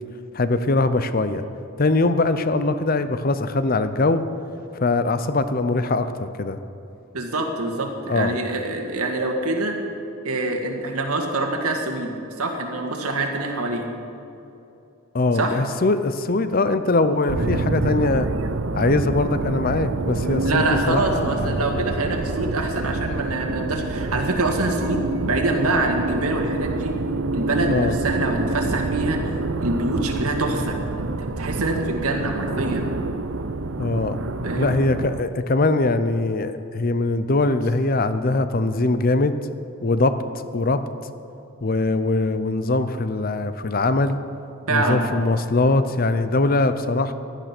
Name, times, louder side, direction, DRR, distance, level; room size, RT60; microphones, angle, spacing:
voice 1, 0.3-1.4 1.8-4.2 4.8-6.6 8.1-8.4 15.1-18.3 18.7-21.5 27.7-27.9 33.8-34.2 34.6-39.4 39.8-40.1 40.5-40.8 41.6-44.2 44.7-47.1, left 2 dB, 40° left, 11 dB, 0.6 m, -22 dB
voice 2, 7.1-9.8 10.2-13.9 15.3-15.6 20.4-26.9 27.3-29.2 29.6-32.9 34.4-34.8 44.7-45.1, right 2 dB, 85° right, 3 dB, 2.0 m, -25 dB
sound 1, 17.3-35.2, right 3 dB, 60° right, 0.6 m, -27 dB
16.0 x 12.0 x 6.0 m, 2.8 s
head